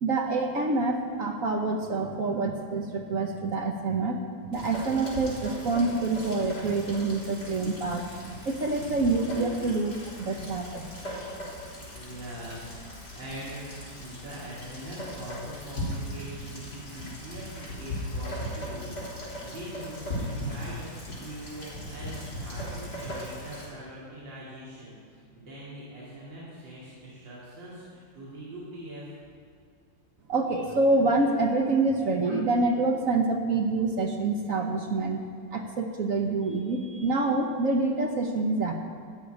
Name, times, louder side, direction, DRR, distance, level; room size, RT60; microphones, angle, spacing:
voice 1, 0.0-4.2 4.5-8.1 8.4-11.2 30.3-35.2 35.5-38.7, right 3 dB, 55° right, 3 dB, 1.1 m, -26 dB
Rain, 4.5-23.7, left 1 dB, 55° left, 4.3 m, -38 dB
voice 2, 11.9-29.1, right 1 dB, 75° right, -9 dB, 3.6 m, -42 dB
13.5 x 5.8 x 9.4 m, 2.1 s
omnidirectional pair, 2.0 m